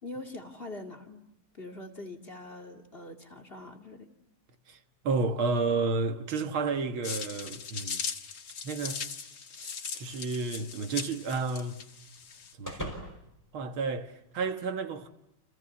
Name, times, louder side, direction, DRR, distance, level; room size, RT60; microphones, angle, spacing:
voice 1, 0.0-1.3 1.5-4.1, left 2 dB, 25° left, 2.6 m, -43 dB
voice 2, 5.0-8.0 8.6-9.0 9.6-11.8 12.6-13.1 13.5-15.1, right 4 dB, 70° right, 2.2 m, -31 dB
sound 1, 7.0-12.5, left 6 dB, 45° left, 1.8 m, -39 dB
sound 2, 10.1-14.5, equal, 5° left, 5.0 m, -46 dB
29.5 x 28.5 x 7.0 m
omnidirectional pair, 2.3 m